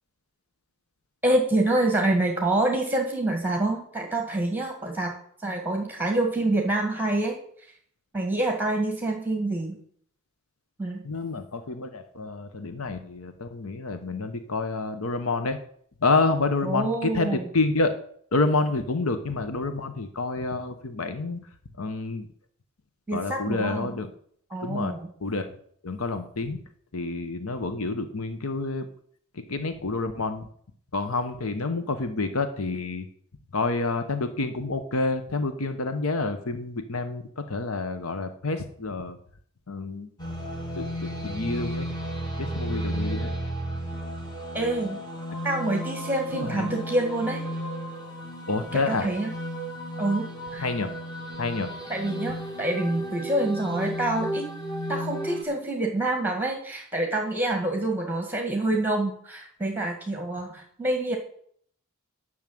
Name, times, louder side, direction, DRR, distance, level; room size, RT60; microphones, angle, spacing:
voice 1, 1.2-5.1 5.4-7.4 8.1-9.8 10.8-11.1 16.6-17.4 23.1-23.9 24.5-25.0 44.5-45.0 45.4-47.4 48.7-49.3 50.0-50.6 51.9-54.5 54.9-61.2, right 2 dB, 10° right, 2 dB, 1.6 m, -26 dB
voice 2, 11.0-15.6 16.0-17.9 18.3-21.5 21.8-22.3 23.1-24.1 24.6-24.9 25.2-25.5 25.8-26.6 26.9-28.9 29.3-30.5 30.9-33.1 33.5-39.2 39.7-40.1 40.8-41.9 42.4-43.3 46.3-46.7 48.5-49.1 50.6-50.9 51.4-51.7, left 3 dB, 75° left, 9 dB, 0.9 m, -28 dB
sound 1, 40.2-55.4, equal, 20° left, 2.2 m, -33 dB
11.0 x 6.4 x 7.7 m, 0.63 s
head